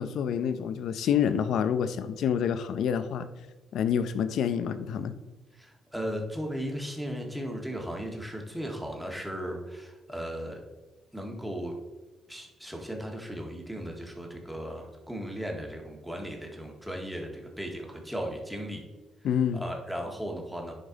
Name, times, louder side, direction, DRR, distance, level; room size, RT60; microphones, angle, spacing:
voice 1, 0.0-3.3 3.7-5.1 19.2-19.6, left 8 dB, 75° left, 12 dB, 0.6 m, -27 dB
voice 2, 5.5-10.6 11.1-11.7 12.3-18.8 19.5-20.7, equal, ahead, 1 dB, 1.8 m, -36 dB
10.0 x 5.3 x 4.0 m, 1.2 s
cardioid pair, 90°, 0 cm